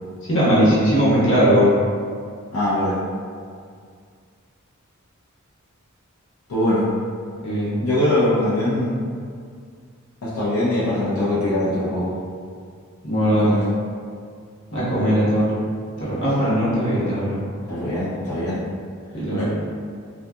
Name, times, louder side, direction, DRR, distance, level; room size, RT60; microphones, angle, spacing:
voice 1, 0.3-1.7 7.4-7.7 13.0-13.6 14.7-15.5 16.0-17.4 19.1-19.4, equal, 60° left, -9 dB, 0.9 m, -19 dB
voice 2, 2.5-3.0 6.5-6.9 7.8-9.0 10.2-12.2 13.4-13.6 17.7-18.6 19.3-19.4, left 1 dB, 85° left, -10 dB, 0.6 m, -22 dB
2.7 x 2.3 x 2.3 m, 2.1 s
head